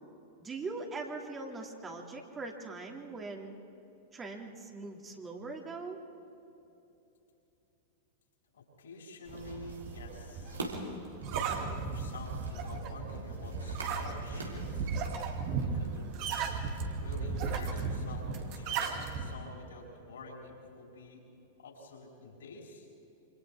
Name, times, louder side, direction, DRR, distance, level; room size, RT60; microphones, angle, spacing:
voice 1, 0.4-3.5 4.1-6.0, right 3 dB, 20° right, 1 dB, 2.6 m, -41 dB
voice 2, 8.5-10.8 11.9-14.9 15.6-16.1 17.0-21.2 21.6-22.9, left 2 dB, 70° left, -1 dB, 6.5 m, -48 dB
sound 1, 9.2-16.9, right 2 dB, 80° right, 3.6 m, -45 dB
sound 2, 9.3-19.3, right 5 dB, 45° right, 2.4 m, -36 dB
28.0 x 26.5 x 3.6 m, 2.9 s
figure-of-eight pair, 95°, 0 cm